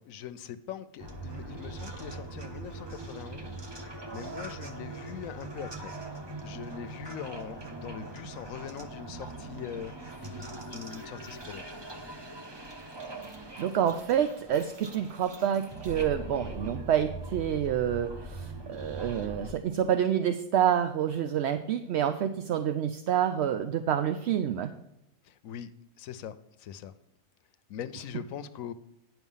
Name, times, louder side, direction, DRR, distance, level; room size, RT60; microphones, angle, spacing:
voice 1, 0.0-3.6 4.1-5.9 6.4-11.7 25.2-25.7 26.0-26.9 27.7-28.7, left 9 dB, 80° left, 13 dB, 1.0 m, -42 dB
sound 1, 1.0-19.5, right 2 dB, 25° right, 0.8 m, -41 dB
voice 2, 13.2-24.7, right 9 dB, 65° right, 8 dB, 0.7 m, -28 dB
9.9 x 6.1 x 5.4 m, 0.82 s
omnidirectional pair, 1.4 m